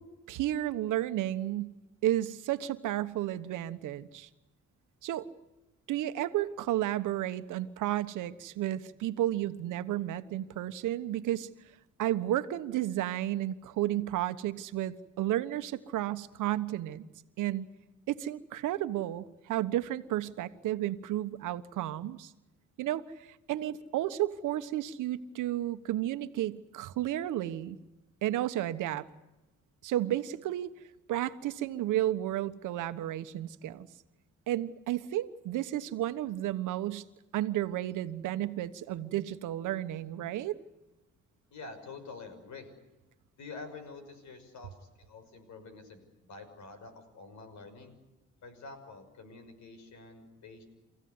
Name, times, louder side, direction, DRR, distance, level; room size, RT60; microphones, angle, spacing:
voice 1, 0.3-1.7 2.0-4.3 5.0-5.2 5.9-11.5 12.0-17.1 17.4-17.7 18.1-22.3 22.8-27.8 28.2-29.0 29.8-30.7 31.1-33.9 34.5-37.0 37.3-40.6, right 13 dB, 85° right, 11 dB, 1.3 m, -32 dB
voice 2, 41.5-42.7 43.4-47.9 48.4-50.6, left 4 dB, 70° left, 9 dB, 6.2 m, -47 dB
29.5 x 16.0 x 9.6 m, 1.0 s
cardioid pair, 90°, 30 cm